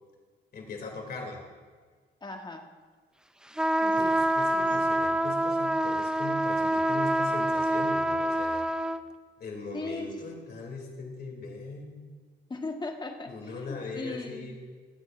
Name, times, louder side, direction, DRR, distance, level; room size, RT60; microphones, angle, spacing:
voice 1, 0.5-1.4 4.0-8.7 9.4-12.2 13.3-14.6, left 3 dB, 50° left, 1 dB, 2.8 m, -40 dB
voice 2, 2.2-2.6 3.8-4.1 9.7-10.1 12.5-14.5, left 3 dB, 20° left, 3 dB, 1.4 m, -38 dB
sound 1, 3.6-9.0, right 1 dB, 5° right, 0.4 m, -26 dB
23.0 x 8.2 x 2.5 m, 1.5 s
cardioid pair, 90°, 20 cm